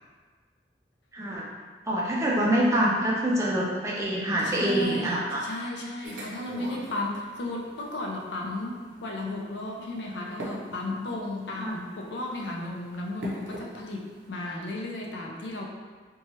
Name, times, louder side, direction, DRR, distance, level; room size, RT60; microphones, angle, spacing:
voice 1, 1.1-1.5 1.9-5.4 11.6-11.8, right 1 dB, 15° right, -4 dB, 0.3 m, -25 dB
voice 2, 4.4-15.7, left 2 dB, 80° left, 0 dB, 0.4 m, -34 dB
sound 1, 6.0-14.3, right 1 dB, 90° right, 0.6 m, -44 dB
2.7 x 2.2 x 3.0 m, 1.5 s
head